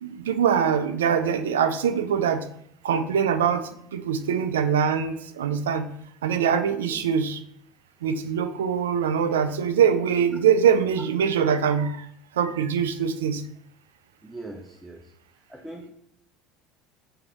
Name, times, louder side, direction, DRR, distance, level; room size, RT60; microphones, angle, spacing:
voice 1, 0.0-2.5 2.8-5.9 6.2-7.4 8.0-12.1 12.3-13.4, right 7 dB, 70° right, 9 dB, 0.3 m, -23 dB
voice 2, 6.8-7.1 14.2-15.1 15.5-15.9, right 2 dB, 5° right, 1 dB, 0.5 m, -41 dB
3.5 x 3.3 x 3.4 m, 0.69 s
figure-of-eight pair, 65°, 0 cm